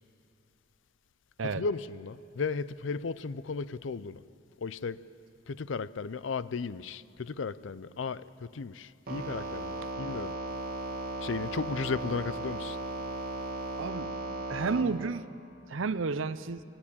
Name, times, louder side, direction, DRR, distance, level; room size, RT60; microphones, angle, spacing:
voice 1, 1.4-4.2 4.6-5.0 5.5-10.3 11.2-12.8, left 4 dB, 75° left, 0.5 m, -35 dB
sound 1, 9.1-14.8, right 2 dB, 50° right, 2.1 m, -36 dB
voice 2, 13.8-14.1 14.5-15.3 15.7-16.6, right 4 dB, 85° right, 0.6 m, -31 dB
19.5 x 17.0 x 8.8 m
head